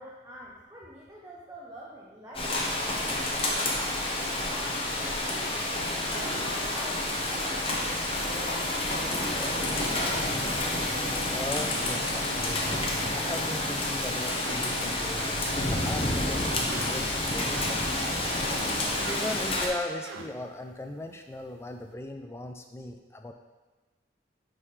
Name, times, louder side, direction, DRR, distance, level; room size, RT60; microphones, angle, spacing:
voice 1, 0.0-5.6 6.0-9.8, equal, 15° right, -5 dB, 0.7 m, -46 dB
Rain, 2.3-19.7, left 1 dB, 30° left, 0.8 m, -29 dB
sound 1, 5.8-9.2 9.6-10.7 11.3-12.2 12.5-13.8 14.1-18.2 18.6-20.6, right 4 dB, 85° right, 0.5 m, -46 dB
sound 2, 8.1-15.2, left 3 dB, 90° left, 1.0 m, -42 dB
voice 2, 11.3-12.8 13.1-18.6 19.1-23.3, left 1 dB, 15° left, 5 dB, 0.3 m, -38 dB
9.7 x 3.8 x 3.2 m, 1.3 s
head